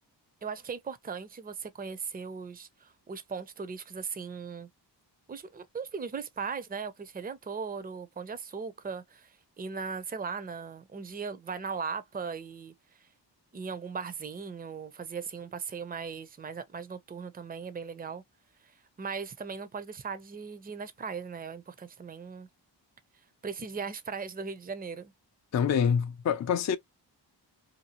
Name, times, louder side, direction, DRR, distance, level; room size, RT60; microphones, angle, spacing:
voice 1, 0.4-4.7 5.3-12.7 13.5-18.2 19.0-22.5 23.4-25.1, right 5 dB, 20° right, 0.5 m, -38 dB
voice 2, 25.5-26.8, left 7 dB, 40° left, 0.4 m, -26 dB
2.7 x 2.3 x 2.8 m
cardioid pair, 70°, 44 cm